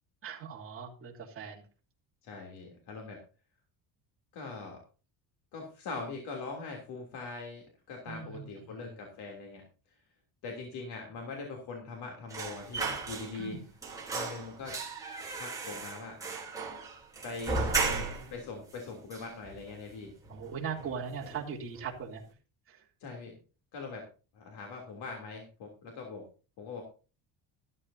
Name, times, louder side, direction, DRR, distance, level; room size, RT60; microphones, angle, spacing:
voice 1, 0.2-1.6 8.0-8.4 8.7-8.9 13.3-13.6 17.5-18.2 20.3-22.2 22.7-22.8, right 6 dB, 30° right, -2 dB, 3.1 m, -40 dB
voice 2, 2.2-3.2 4.3-4.8 5.5-9.9 10.4-13.6 14.1-14.8 15.3-16.2 17.2-20.1 23.0-23.4 23.7-24.1 24.3-26.2 26.6-26.8, left 4 dB, 70° left, 1 dB, 3.2 m, -42 dB
sound 1, 12.3-13.6 13.8-18.4 18.7-18.8 19.1-19.9 20.2-20.5 20.8-21.5 21.8-21.9, right 4 dB, 10° right, 3.4 m, -35 dB
13.5 x 13.5 x 2.8 m, 0.34 s
cardioid pair, 165°, 41 cm